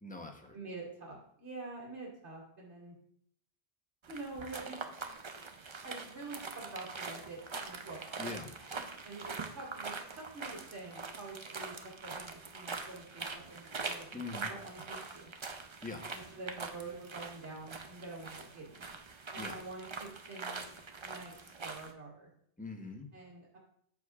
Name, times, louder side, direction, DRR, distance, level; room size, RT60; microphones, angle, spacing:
voice 1, 0.0-0.6 8.2-8.5 14.1-14.5 15.8-16.1 19.4-19.6 22.6-23.1, left 3 dB, 10° left, 2 dB, 0.8 m, -43 dB
voice 2, 0.5-2.9 4.1-5.2 5.8-8.3 8.6-8.7 9.0-11.7 12.0-14.1 14.4-15.3 16.1-19.0 19.3-20.7 21.0-22.3 23.1-23.6, right 3 dB, 85° right, -7 dB, 2.6 m, -47 dB
sound 1, 4.0-21.9, right 4 dB, 35° right, 0.5 m, -44 dB
13.0 x 4.8 x 2.4 m, 0.68 s
omnidirectional pair, 1.1 m